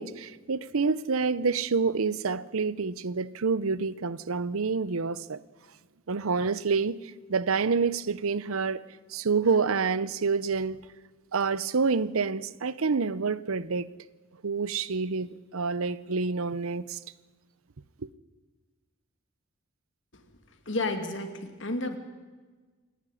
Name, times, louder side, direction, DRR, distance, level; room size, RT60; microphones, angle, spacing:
voice 1, 0.0-5.4 6.1-7.0 7.3-8.8 9.1-10.8 11.3-13.9 14.4-17.0, right 5 dB, 80° right, 0.7 m, -27 dB
voice 2, 20.7-22.0, left 2 dB, 60° left, 2.4 m, -31 dB
27.0 x 11.0 x 9.9 m
head